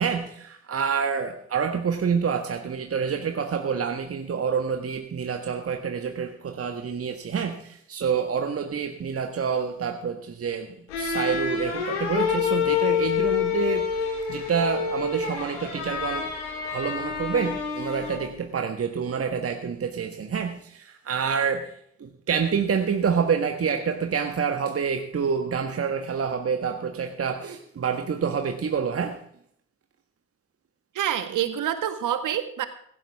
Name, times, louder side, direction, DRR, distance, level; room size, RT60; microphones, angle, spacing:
voice 1, 0.0-16.3 16.7-29.2, right 6 dB, 40° right, 5 dB, 1.6 m, -27 dB
sound 1, 10.9-18.4, left 7 dB, 85° left, 2.1 m, -27 dB
voice 2, 31.0-32.7, right 10 dB, 60° right, 9 dB, 1.7 m, -27 dB
16.5 x 15.5 x 3.6 m, 0.65 s
hypercardioid pair, 45°, 34 cm